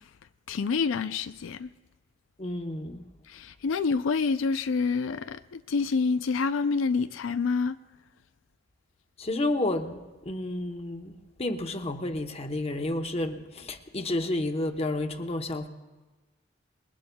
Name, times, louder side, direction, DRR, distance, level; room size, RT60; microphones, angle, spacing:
voice 1, 0.5-1.7 3.3-7.8, left 4 dB, 85° left, 0.4 m, -27 dB
voice 2, 2.4-3.0 9.2-10.0 10.2-11.1 11.4-15.7, left 2 dB, 30° left, 0.9 m, -30 dB
27.5 x 21.0 x 2.3 m
head